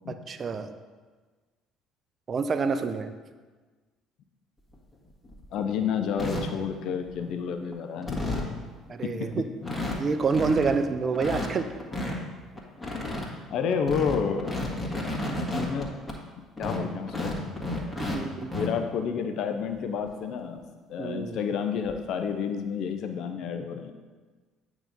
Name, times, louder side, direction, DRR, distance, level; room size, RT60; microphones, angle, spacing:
voice 1, 0.1-0.7 2.3-3.1 8.9-9.4 10.0-11.7 18.0-18.5 21.0-21.4, right 5 dB, 40° right, 9 dB, 0.5 m, -27 dB
sound 1, 4.7-4.8 5.2-5.6 6.2-6.4 7.1-7.4 7.7-7.8 8.0-8.5 9.0-9.1 9.3-9.4 9.6-9.9 10.2-10.7 11.1-12.1 12.6-13.2 13.7-16.2 16.6-18.2 18.4-18.7 20.1-20.2 20.6-20.7 21.9-22.1, left 1 dB, 15° left, 1.7 m, -32 dB
voice 2, 5.5-8.6 9.0-9.7 13.5-14.6 15.6-15.9 16.6-17.4 18.6-20.6 20.9-23.9, left 7 dB, 60° left, 6 dB, 0.6 m, -30 dB
8.8 x 3.0 x 5.2 m, 1.4 s
figure-of-eight pair, 55°, 0 cm